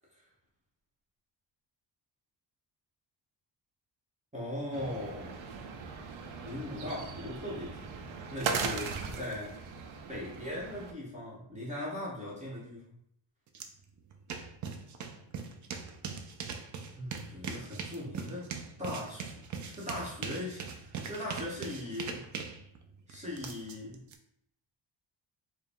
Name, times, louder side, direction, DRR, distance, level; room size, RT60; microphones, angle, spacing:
voice 1, 4.3-5.4 6.4-8.0 8.3-9.6 10.1-13.0 16.9-18.5 18.8-19.3 19.7-22.3 23.1-24.0, left 1 dB, 15° right, -6 dB, 0.9 m, -39 dB
sound 1, 4.7-10.9, right 5 dB, 90° right, 0.6 m, -39 dB
sound 2, 13.5-13.7 14.0-24.1, right 6 dB, 45° right, 0.4 m, -41 dB
4.6 x 2.0 x 3.4 m, 0.75 s
cardioid pair, 150°, 45 cm